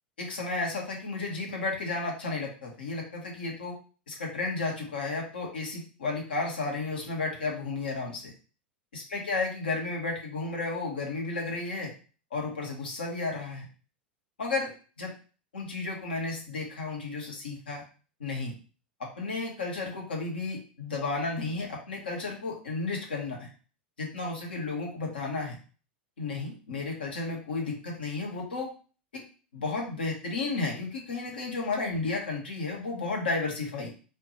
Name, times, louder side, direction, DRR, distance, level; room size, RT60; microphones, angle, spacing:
voice 1, 0.2-3.8 4.1-8.3 8.9-11.9 12.3-13.7 14.4-14.7 15.0-15.1 15.5-17.8 18.2-18.5 19.0-23.4 24.0-25.6 26.2-28.7 29.1-29.2 29.5-33.9, left 3 dB, 70° left, -1 dB, 1.6 m, -33 dB
4.2 x 2.9 x 3.3 m, 0.37 s
figure-of-eight pair, 85°, 6 cm